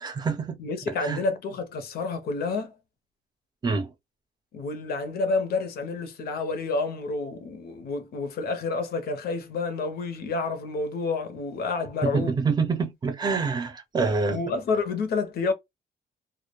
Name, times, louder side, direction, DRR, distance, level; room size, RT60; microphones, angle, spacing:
voice 1, 0.0-0.6 1.0-1.2 3.6-3.9 12.0-14.4, right 4 dB, 25° right, 0.5 m, -26 dB
voice 2, 0.6-2.7 4.5-12.4 14.3-15.5, left 3 dB, 75° left, 0.6 m, -29 dB
2.2 x 2.0 x 2.8 m
cardioid pair, 155°, 16 cm